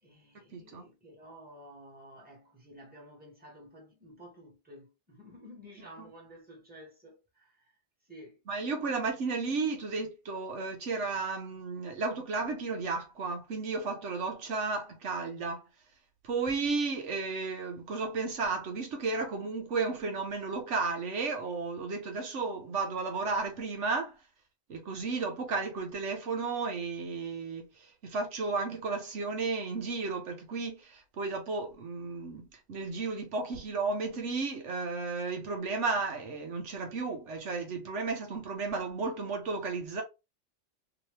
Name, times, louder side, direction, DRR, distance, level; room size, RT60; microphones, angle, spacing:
voice 1, 0.0-7.7 8.1-8.4, equal, 10° right, 1.4 m, -52 dB
voice 2, 0.5-0.8 8.5-15.6 16.2-24.1 24.7-27.7 28.0-40.0, right 4 dB, 75° right, 1.1 m, -33 dB
3.1 x 2.9 x 3.1 m
omnidirectional pair, 1.3 m